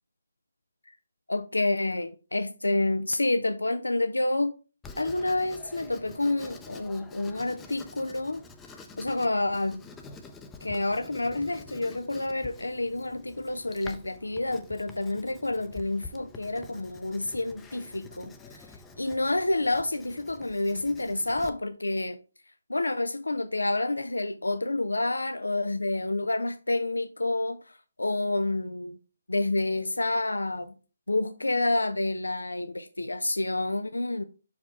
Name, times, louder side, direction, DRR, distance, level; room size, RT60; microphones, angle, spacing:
voice 1, 1.3-4.5 5.0-8.4 9.0-9.8 10.6-22.2 22.7-29.0 29.3-30.8 31.1-34.2, left 2 dB, 85° left, 0.5 m, -29 dB
Writing, 4.8-21.5, left 4 dB, 10° left, 0.6 m, -48 dB
5.6 x 4.9 x 4.6 m
figure-of-eight pair, 145°, 0 cm